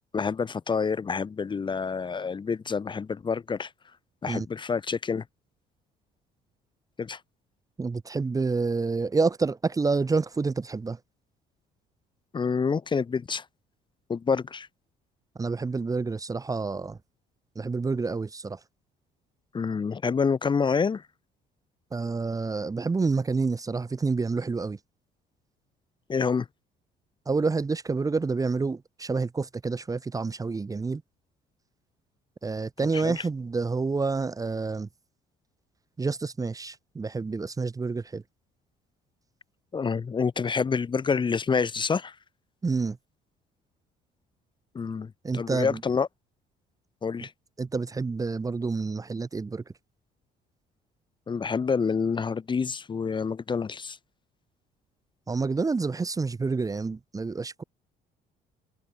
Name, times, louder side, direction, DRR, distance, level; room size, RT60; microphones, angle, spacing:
voice 1, 0.1-3.7 4.2-5.2 7.0-7.2 12.3-13.4 14.1-14.7 19.5-21.0 26.1-26.5 32.9-33.2 39.7-42.1 44.7-46.1 47.0-47.3 51.3-54.0, left 5 dB, 30° left, 1.2 m, -27 dB
voice 2, 7.8-11.0 15.4-17.0 17.5-18.6 21.9-24.8 27.3-31.0 32.4-34.9 36.0-38.2 42.6-43.0 45.2-45.8 47.6-49.6 55.3-57.6, right 4 dB, 20° right, 1.2 m, -28 dB
cardioid pair, 110°, 17 cm